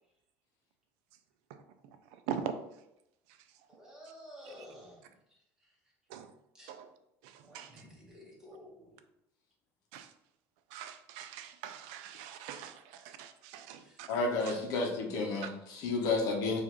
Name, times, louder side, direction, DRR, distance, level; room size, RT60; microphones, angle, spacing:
voice 1, 2.3-2.6 6.1-6.3 6.7-6.9 7.2-7.7 9.9-10.1 10.7-14.1 14.4-14.5, right 8 dB, 85° right, 8 dB, 0.4 m, -42 dB
voice 2, 3.7-5.0 6.5-6.7 7.4-9.0 13.7-14.0, equal, 10° right, -4 dB, 1.3 m, -52 dB
voice 3, 14.1-16.6, left 3 dB, 60° left, 0 dB, 0.8 m, -31 dB
4.8 x 2.5 x 3.0 m, 0.84 s
cardioid pair, 135°, 7 cm